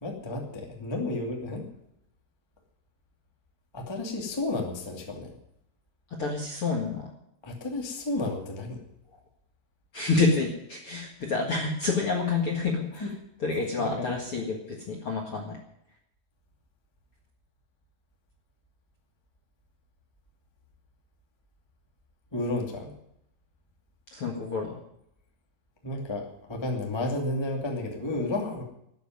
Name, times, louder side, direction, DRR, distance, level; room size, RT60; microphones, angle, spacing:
voice 1, 0.0-1.6 3.7-5.3 7.4-8.8 13.0-13.1 13.8-14.1 22.3-22.9 25.8-28.6, left 2 dB, 10° left, 1 dB, 1.2 m, -32 dB
voice 2, 6.2-7.1 9.9-13.1 13.4-15.6 24.1-24.8, left 4 dB, 45° left, 0 dB, 1.8 m, -28 dB
12.5 x 9.2 x 9.4 m, 0.76 s
omnidirectional pair, 5.0 m